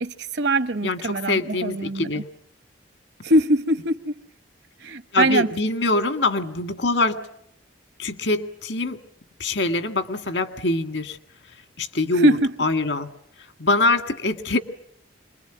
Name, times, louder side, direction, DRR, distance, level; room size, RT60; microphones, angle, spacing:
voice 1, 0.0-2.2 3.2-4.2 4.8-5.5 12.2-12.5, right 1 dB, 60° right, 1.0 m, -22 dB
voice 2, 0.8-2.3 5.1-7.2 8.0-9.0 9.4-11.2 11.5-13.1 13.4-14.6, left 2 dB, 70° left, 1.8 m, -24 dB
27.0 x 21.5 x 9.0 m
head